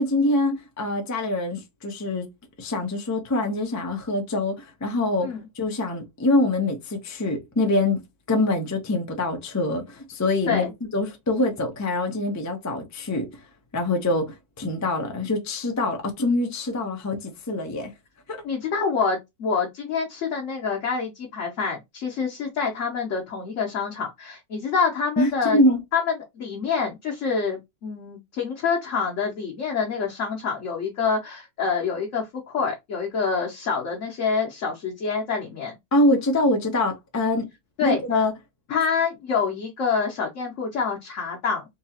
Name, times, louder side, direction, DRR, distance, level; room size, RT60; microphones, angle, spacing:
voice 1, 0.0-2.3 2.6-5.3 5.6-10.7 10.9-13.3 13.7-14.3 14.6-17.9 18.3-18.4 25.2-25.8 35.9-37.5 37.8-38.3, left 2 dB, 20° left, 0.5 m, -24 dB
voice 2, 18.4-25.6 25.9-26.0 26.3-35.7 37.8-38.0 38.7-41.7, left 5 dB, 60° left, 1.1 m, -26 dB
3.9 x 2.8 x 2.8 m
omnidirectional pair, 1.6 m